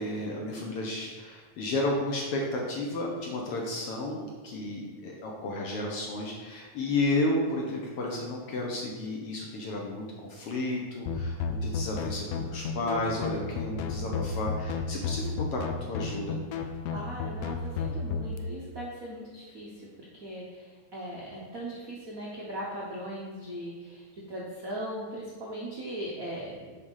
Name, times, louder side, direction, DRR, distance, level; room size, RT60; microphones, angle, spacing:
voice 1, 0.0-16.4, left 2 dB, 65° left, -1 dB, 1.6 m, -32 dB
sound 1, 11.1-18.4, left 4 dB, 80° left, 1.4 m, -33 dB
voice 2, 16.9-19.7 20.2-26.7, right 1 dB, 80° right, -5 dB, 0.7 m, -39 dB
6.6 x 5.2 x 5.5 m, 1.4 s
omnidirectional pair, 3.5 m